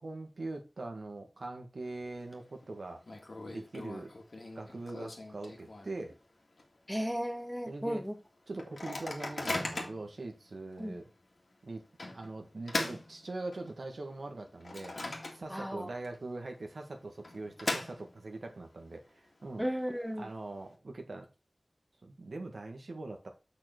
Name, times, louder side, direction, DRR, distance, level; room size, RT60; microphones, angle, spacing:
voice 1, 0.0-3.0 3.5-4.1 4.6-6.2 7.7-8.0 8.5-11.1 11.6-11.8 12.1-15.0 15.3-19.7 20.2-21.3 22.0-23.3, right 2 dB, 85° right, 1.8 m, -42 dB
Microwave oven, 1.8-2.3 2.6-2.7 3.0-6.1 6.6-6.7 6.9-7.2 7.8-7.9 8.6-10.1 10.7-10.9 12.0-13.8 14.3-15.8 16.0-16.1 17.0-18.4, left 2 dB, 70° left, 2.0 m, -39 dB
voice 2, 6.9-8.1 10.8-11.0 15.5-15.9 19.6-20.3, equal, ahead, 1.3 m, -35 dB
6.8 x 5.9 x 4.5 m
wide cardioid pair, 55°, 0 cm